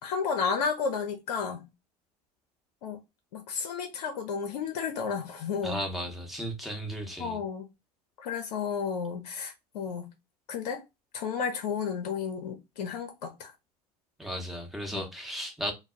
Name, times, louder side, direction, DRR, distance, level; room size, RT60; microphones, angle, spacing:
voice 1, 0.0-1.7 2.8-3.0 3.3-5.9 7.2-7.7 8.2-10.1 10.5-10.8 11.1-13.5 14.9-15.0, left 6 dB, 75° left, 0.5 m, -32 dB
voice 2, 5.6-7.4 14.2-15.7, equal, ahead, 0.9 m, -35 dB
2.2 x 2.0 x 3.7 m
hypercardioid pair, 80°, 21 cm